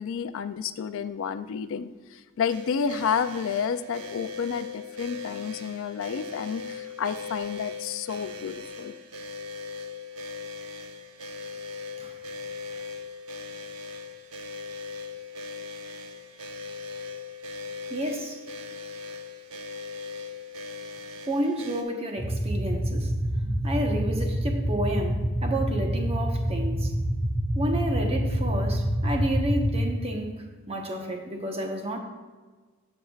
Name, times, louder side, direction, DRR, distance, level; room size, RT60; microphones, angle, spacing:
voice 1, 0.0-8.9, left 7 dB, 60° left, 12 dB, 0.4 m, -30 dB
sound 1, 2.5-21.8, left 4 dB, 85° right, 0.9 m, -39 dB
voice 2, 17.9-18.4 21.3-26.9 27.5-32.0, right 1 dB, 30° right, 2 dB, 1.0 m, -31 dB
sound 2, 22.2-29.8, right 1 dB, 5° right, 0.8 m, -27 dB
15.0 x 5.8 x 2.4 m, 1.4 s
head